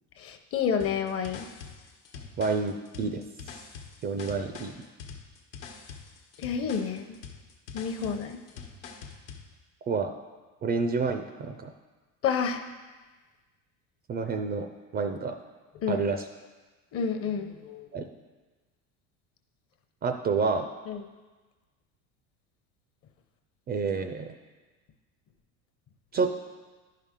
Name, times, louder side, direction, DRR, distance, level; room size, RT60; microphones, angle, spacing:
voice 1, 0.2-1.5 6.4-7.2 7.7-8.4 12.2-12.6 15.8-16.0 16.9-18.1 20.9-21.0, left 6 dB, 40° left, 6 dB, 0.8 m, -30 dB
sound 1, 0.8-9.5, left 5 dB, 85° left, 1.2 m, -45 dB
voice 2, 2.4-3.2 4.0-4.7 9.9-10.1 10.6-11.7 14.1-14.7 14.9-15.4 15.9-16.2 17.9-18.1 20.0-20.7 23.7-24.3 26.1-26.5, right 4 dB, 25° right, 7 dB, 0.4 m, -29 dB
10.5 x 5.7 x 3.7 m, 1.3 s
supercardioid pair, 120°, 37 cm